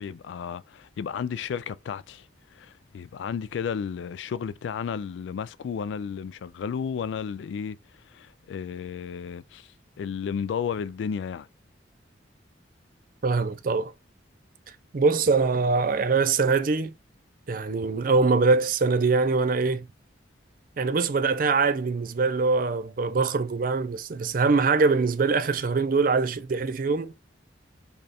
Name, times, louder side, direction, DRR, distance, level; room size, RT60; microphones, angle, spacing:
voice 1, 0.0-2.3 2.5-7.8 8.1-9.7 10.0-11.5, left 7 dB, 75° left, 0.3 m, -33 dB
voice 2, 13.2-13.9 14.9-16.9 17.5-19.9 20.8-27.1, right 4 dB, 45° right, 0.4 m, -23 dB
5.2 x 2.3 x 4.2 m
head